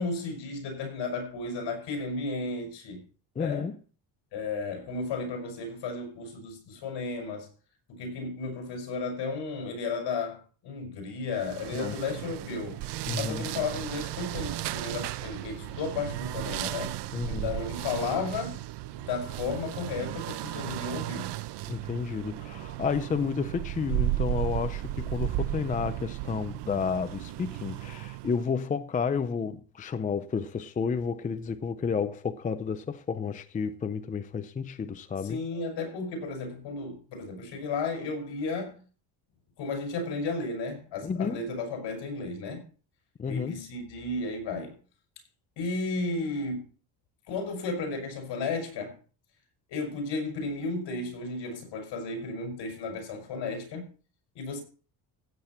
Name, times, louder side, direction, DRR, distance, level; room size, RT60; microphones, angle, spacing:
voice 1, 0.0-3.0 3.4-3.7 4.3-7.5 7.9-12.8 13.2-16.9 17.2-18.6 18.9-21.3 35.2-38.8 39.6-42.6 43.3-44.8 45.6-46.7 47.3-49.0 49.7-53.9 54.3-54.6, left 3 dB, 65° left, 5.8 m, -33 dB
voice 2, 3.4-3.8 11.8-12.0 13.1-13.5 17.1-17.5 21.7-35.4 41.0-41.5 43.2-43.6, left 6 dB, 20° left, 0.5 m, -31 dB
sound 1, 11.4-28.5, right 16 dB, 60° right, 0.8 m, -35 dB
15.5 x 8.7 x 4.3 m
cardioid pair, 145°, 46 cm